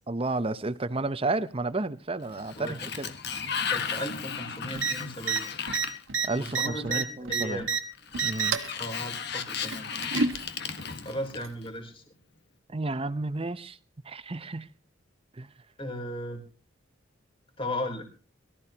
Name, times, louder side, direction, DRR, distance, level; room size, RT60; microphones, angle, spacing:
voice 1, 0.1-3.1 6.2-7.6 8.2-8.6 10.4-10.5 12.7-13.8 14.0-14.7 15.3-15.5, right 2 dB, 30° right, 14 dB, 0.8 m, -32 dB
Sliding door, 2.2-6.8 8.0-11.7, left 7 dB, 55° left, 1.5 m, -35 dB
voice 2, 2.6-3.0 3.7-5.5 6.3-7.7 8.7-10.1 11.0-12.0 15.8-16.4 17.6-18.1, left 1 dB, 25° left, 3 dB, 3.7 m, -36 dB
sound 1, 4.8-4.9 5.2-5.4 5.7-7.8 8.1-8.7 9.7-10.4 11.4-11.5, right 4 dB, 75° right, 1.4 m, -27 dB
22.5 x 14.0 x 2.9 m, 0.36 s
head